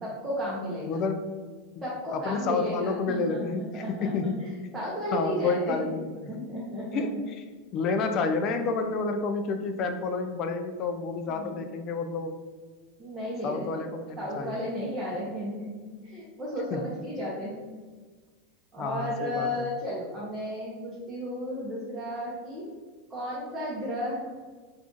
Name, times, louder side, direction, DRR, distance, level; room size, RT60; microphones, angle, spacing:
voice 1, 0.0-1.0 1.8-3.4 3.7-4.3 4.7-5.8 6.3-7.2 7.9-8.1 11.3-11.7 13.0-13.8 14.2-17.5 18.7-22.7 23.1-24.2, equal, 15° right, -8 dB, 0.7 m, -34 dB
voice 2, 0.9-1.4 2.1-4.4 5.1-6.5 6.9-7.2 7.7-12.3 13.4-14.5 16.7-16.8 18.8-19.5, left 4 dB, 40° left, 7 dB, 0.3 m, -30 dB
2.4 x 2.3 x 3.8 m, 1.4 s
supercardioid pair, 130°, 0 cm